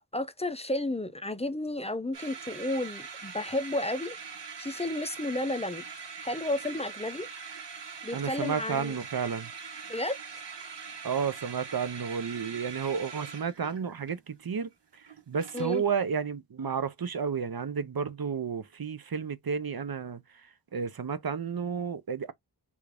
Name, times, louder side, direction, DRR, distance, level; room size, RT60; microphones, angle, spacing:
voice 1, 0.1-4.2 4.6-5.8 6.2-7.3 8.0-9.0 9.9-10.2 15.5-15.8, left 1 dB, 15° left, 0.5 m, -32 dB
sound 1, 2.1-16.0, right 5 dB, 70° right, 1.0 m, -43 dB
voice 2, 8.1-9.5 11.0-14.7 15.3-20.2 20.7-22.3, right 6 dB, 55° right, 0.6 m, -31 dB
3.5 x 2.5 x 3.3 m
wide cardioid pair, 60°, 44 cm